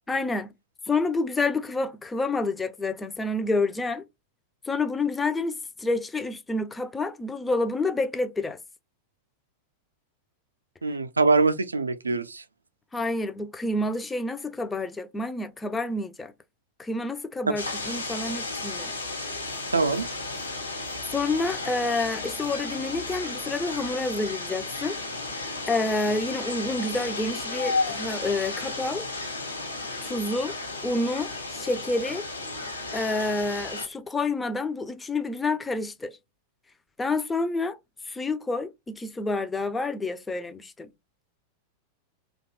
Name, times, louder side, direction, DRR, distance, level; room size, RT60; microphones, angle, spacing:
voice 1, 0.1-0.5 0.9-4.0 4.7-8.6 12.9-16.3 16.8-18.9 21.1-25.0 25.7-29.0 30.0-30.6 30.8-32.2 32.9-36.2 37.0-37.8 38.1-40.9, left 3 dB, 10° left, 0.3 m, -28 dB
voice 2, 10.8-12.4 19.7-20.1, right 3 dB, 75° right, 0.3 m, -23 dB
sound 1, 17.6-33.9, left 3 dB, 80° left, 0.8 m, -33 dB
2.7 x 2.2 x 2.9 m
figure-of-eight pair, 90°, 0 cm